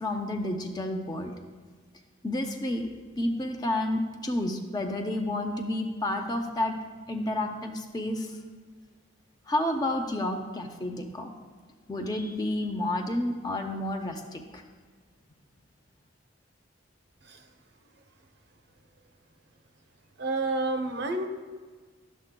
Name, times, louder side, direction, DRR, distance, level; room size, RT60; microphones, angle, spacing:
voice 1, 0.0-1.3 2.2-2.9 3.2-6.8 7.1-8.4 9.5-11.3 11.9-14.6, left 1 dB, 20° left, 3 dB, 0.5 m, -30 dB
voice 2, 20.2-21.3, right 2 dB, 60° right, 5 dB, 0.7 m, -29 dB
12.0 x 6.6 x 2.2 m, 1.5 s
head